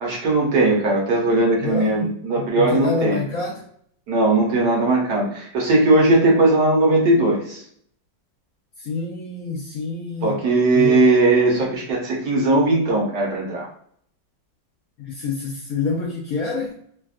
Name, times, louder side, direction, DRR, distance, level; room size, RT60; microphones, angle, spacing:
voice 1, 0.0-3.2 4.1-7.6 10.2-13.7, right 2 dB, 65° right, -2 dB, 1.2 m, -18 dB
voice 2, 1.6-2.1 2.4-3.6 8.8-10.4 10.7-11.0 15.0-16.8, left 4 dB, 70° left, -4 dB, 0.8 m, -27 dB
3.4 x 2.3 x 2.4 m, 0.63 s
omnidirectional pair, 2.1 m